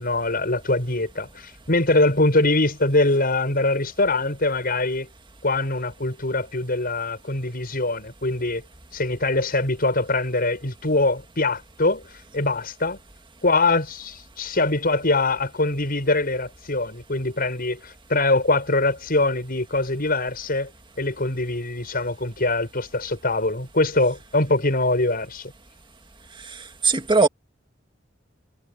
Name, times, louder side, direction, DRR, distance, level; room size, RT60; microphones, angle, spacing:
voice 1, 0.0-5.1 5.4-8.6 8.9-12.0 12.3-13.0 13.4-20.7 21.0-25.5, left 2 dB, 50° left, 6.5 m, -23 dB
voice 2, 26.4-27.3, right 4 dB, 25° right, 1.9 m, -20 dB
head